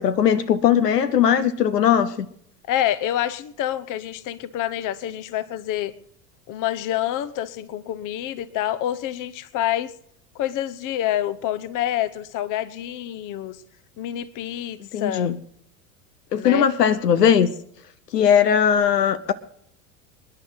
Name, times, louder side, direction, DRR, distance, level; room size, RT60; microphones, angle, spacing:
voice 1, 0.0-2.3 14.9-15.4 16.3-17.5 18.1-19.3, left 8 dB, 85° left, 1.0 m, -19 dB
voice 2, 2.7-5.9 6.5-9.9 10.3-13.6 14.0-15.3 16.3-16.7, left 12 dB, 40° left, 1.0 m, -27 dB
27.5 x 10.0 x 4.0 m
hypercardioid pair, 90°, 47 cm